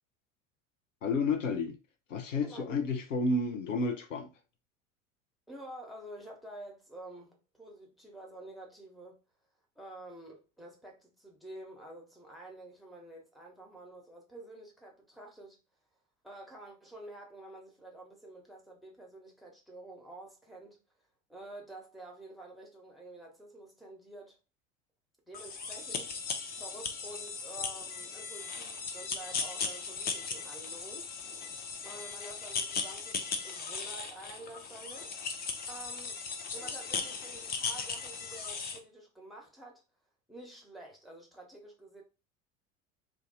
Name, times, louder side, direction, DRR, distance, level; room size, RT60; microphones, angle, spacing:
voice 1, 1.0-1.8 2.1-4.3, left 3 dB, 75° left, 0.7 m, -31 dB
voice 2, 2.4-2.8 5.5-9.2 9.8-15.6 16.2-20.8 21.3-24.4 25.3-31.1 31.6-36.2 36.5-39.8 40.3-42.0, right 1 dB, ahead, 1.0 m, -49 dB
sound 1, 25.3-38.8, left 5 dB, 25° left, 0.6 m, -38 dB
2.5 x 2.3 x 3.9 m
figure-of-eight pair, 70°, 38 cm